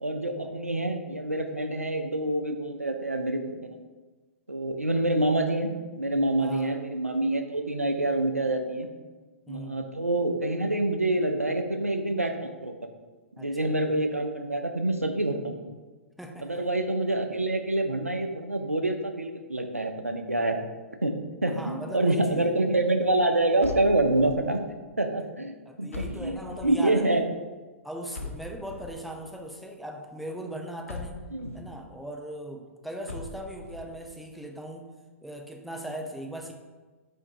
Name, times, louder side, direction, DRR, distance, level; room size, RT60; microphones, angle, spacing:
voice 1, 0.0-3.8 4.5-8.9 9.5-12.7 13.4-15.6 16.4-20.6 21.0-24.6 25.0-27.2 31.3-31.6, right 2 dB, 90° right, 5 dB, 0.4 m, -27 dB
voice 2, 6.4-6.8 9.5-9.9 13.4-13.7 16.2-16.6 21.5-22.6 25.7-27.1 27.8-31.2 31.5-34.9 35.2-36.5, right 1 dB, ahead, 1 dB, 0.4 m, -39 dB
sound 1, 23.6-24.6 25.9-26.9 28.1-29.1 30.9-31.7 33.1-33.9, left 3 dB, 75° left, 0.5 m, -40 dB
3.5 x 2.6 x 4.4 m, 1.3 s
figure-of-eight pair, 110°, 7 cm